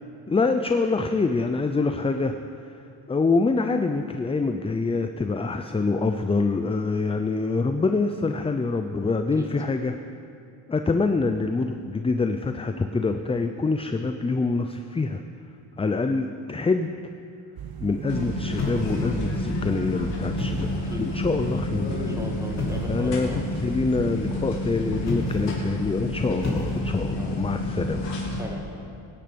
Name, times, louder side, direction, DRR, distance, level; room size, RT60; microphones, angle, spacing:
voice 1, 0.3-2.3 3.1-10.0 10.7-15.2 15.8-16.9 17.8-20.7 21.0-22.1 22.9-28.1, left 3 dB, 15° left, 7 dB, 0.4 m, -25 dB
sound 1, 17.6-25.2, right 7 dB, 50° right, 0.8 m, -37 dB
sound 2, 18.1-28.4, left 2 dB, 60° left, 3.5 m, -30 dB
sound 3, 18.6-19.4 20.2-20.9 22.6-23.0 25.0-25.7 26.4-27.1, left 2 dB, 35° left, 3.5 m, -31 dB
voice 2, 22.1-23.5 27.1-27.4 28.3-28.6, equal, 5° right, 0 dB, 2.2 m, -38 dB
16.5 x 10.5 x 5.2 m, 2.5 s
cardioid pair, 90°, 48 cm